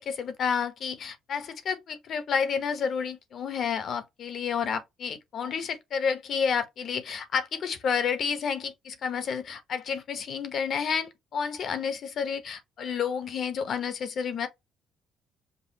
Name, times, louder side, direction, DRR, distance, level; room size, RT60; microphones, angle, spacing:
voice 1, 0.0-14.5, left 6 dB, 60° left, 1.0 m, -30 dB
5.4 x 2.3 x 2.9 m
supercardioid pair, 55°, 0 cm